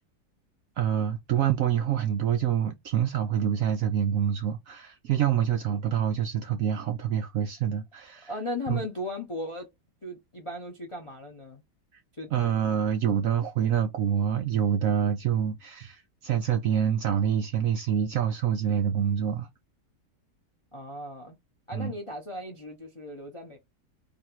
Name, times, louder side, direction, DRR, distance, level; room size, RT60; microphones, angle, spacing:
voice 1, 0.8-8.3 8.7-8.8 12.3-19.5 21.7-21.9, right 9 dB, 70° right, 0.8 m, -26 dB
voice 2, 8.3-9.7 10.0-11.6 12.2-12.3 20.7-21.4 21.7-23.6, left 1 dB, 40° left, 0.4 m, -37 dB
3.4 x 2.5 x 4.4 m
omnidirectional pair, 1.9 m